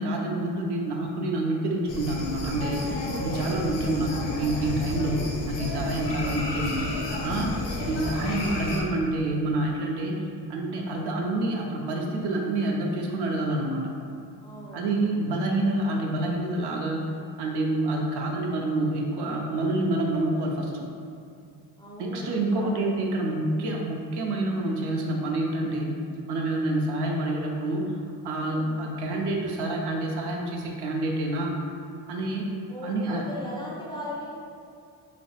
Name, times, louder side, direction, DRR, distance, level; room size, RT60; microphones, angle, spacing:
voice 1, 0.0-6.8 7.2-7.6 7.9-10.2 10.5-13.9 14.7-20.9 22.0-26.0 26.3-27.8 28.2-31.5 32.1-32.5 32.8-33.2, right 2 dB, 60° right, 0 dB, 0.5 m, -27 dB
sound 1, 1.9-8.8, left 2 dB, 70° left, 0.5 m, -31 dB
voice 2, 3.0-3.8 14.4-14.9 19.8-20.0 21.8-23.1 28.4-28.8 32.7-34.3, left 1 dB, 10° left, -7 dB, 0.3 m, -39 dB
2.3 x 2.1 x 2.9 m, 2.4 s
cardioid pair, 75°, 45 cm